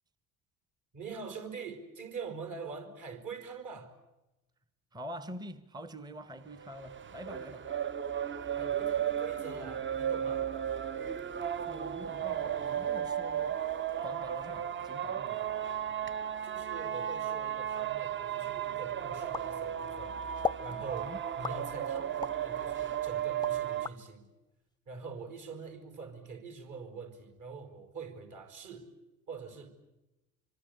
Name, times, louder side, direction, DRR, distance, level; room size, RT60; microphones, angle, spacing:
voice 1, 0.9-3.9 8.6-10.5 16.4-20.2 20.6-24.2 24.9-28.9 29.3-29.7, right 5 dB, 45° right, 5.2 m, -44 dB
voice 2, 4.9-7.7 11.6-13.6 14.0-15.5 20.7-21.2, equal, 10° right, 1.1 m, -45 dB
sound 1, 6.5-23.9, right 9 dB, 25° right, 1.0 m, -35 dB
sound 2, 19.3-20.0 20.4-20.7 21.4-22.4 22.9-24.0, left 5 dB, 10° left, 0.8 m, -36 dB
25.5 x 24.5 x 8.2 m
figure-of-eight pair, 60°, 43 cm